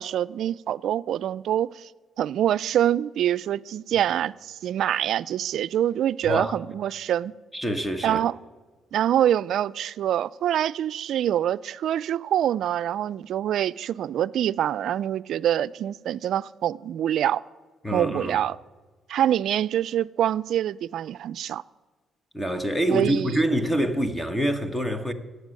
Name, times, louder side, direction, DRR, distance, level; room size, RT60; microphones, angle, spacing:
voice 1, 0.0-1.7 2.2-7.3 8.0-8.3 8.9-17.4 17.9-18.6 19.1-21.6 22.9-23.4, right 11 dB, 75° right, 0.4 m, -25 dB
voice 2, 6.2-6.5 7.5-8.2 17.8-18.4 22.3-25.1, right 1 dB, 10° left, 1.3 m, -25 dB
14.5 x 8.1 x 9.7 m
cardioid pair, 90°, 0 cm